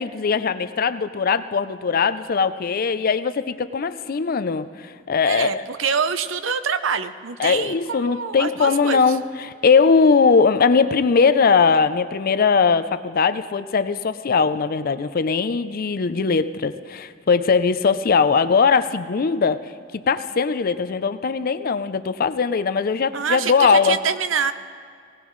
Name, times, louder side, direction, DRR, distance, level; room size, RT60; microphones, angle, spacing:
voice 1, 0.0-5.6 7.4-19.6 19.9-24.0, left 5 dB, 50° left, 12 dB, 0.5 m, -20 dB
voice 2, 5.3-9.2 23.1-24.5, right 6 dB, 75° right, 11 dB, 0.6 m, -25 dB
20.0 x 18.0 x 3.1 m, 2.2 s
head